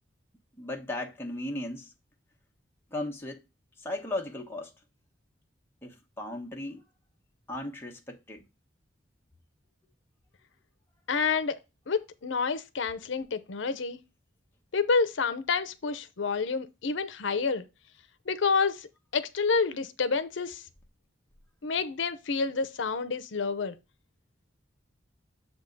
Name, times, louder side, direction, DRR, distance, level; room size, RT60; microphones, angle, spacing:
voice 1, 0.6-1.9 2.9-3.4 3.8-4.7 5.8-6.8 7.5-8.4, left 1 dB, 10° left, 1.1 m, -36 dB
voice 2, 11.1-11.6 11.9-14.0 14.7-17.6 18.3-20.6 21.6-23.8, left 5 dB, 75° left, 0.6 m, -29 dB
7.3 x 3.6 x 5.2 m
head